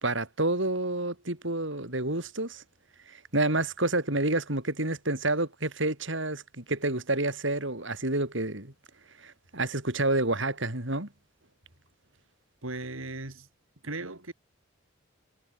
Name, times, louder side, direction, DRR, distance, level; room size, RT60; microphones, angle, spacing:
voice 1, 0.0-2.6 3.1-8.7 9.2-11.1, right 2 dB, 60° right, 4.2 m, -29 dB
voice 2, 12.6-13.5 13.8-14.3, right 2 dB, 80° right, 3.8 m, -37 dB
head